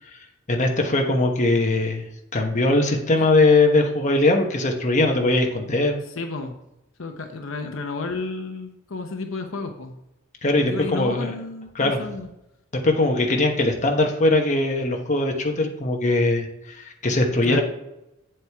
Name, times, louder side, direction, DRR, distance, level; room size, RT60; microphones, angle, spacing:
voice 1, 0.5-2.1 2.3-6.0 10.4-11.3 11.7-12.0 12.8-17.6, left 2 dB, 35° left, 2 dB, 1.1 m, -20 dB
voice 2, 6.1-6.6 7.0-10.0 10.6-12.3 17.4-17.6, left 3 dB, 70° left, 5 dB, 0.8 m, -32 dB
8.2 x 7.7 x 3.5 m, 0.87 s
head